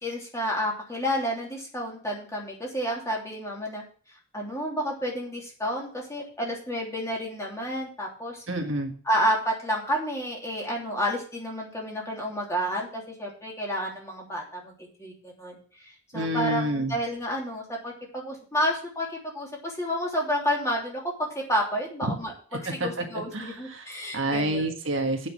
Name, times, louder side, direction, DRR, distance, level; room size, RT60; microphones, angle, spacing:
voice 1, 0.0-3.8 4.3-8.4 9.0-22.3 22.7-24.7, equal, 15° left, -2 dB, 3.1 m, -30 dB
voice 2, 8.5-8.9 16.1-16.9 22.0-22.1 22.8-23.0 23.3-23.9 24.1-25.3, right 1 dB, 60° right, 4 dB, 1.6 m, -28 dB
8.3 x 6.5 x 7.6 m, 0.43 s
head